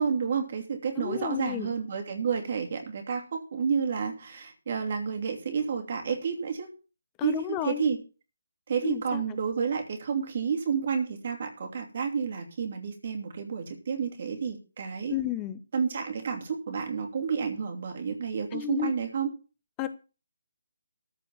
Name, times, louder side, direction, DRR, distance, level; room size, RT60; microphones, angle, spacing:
voice 1, 0.0-6.7 7.2-8.0 8.7-15.2 15.7-19.3, right 6 dB, 45° right, 4 dB, 2.8 m, -30 dB
voice 2, 1.0-1.7 7.2-7.8 8.8-9.2 15.1-15.6 18.5-18.9 19.8-19.9, left 14 dB, 20° left, 13 dB, 0.7 m, -32 dB
14.0 x 5.1 x 7.3 m, 0.34 s
figure-of-eight pair, 145°, 0 cm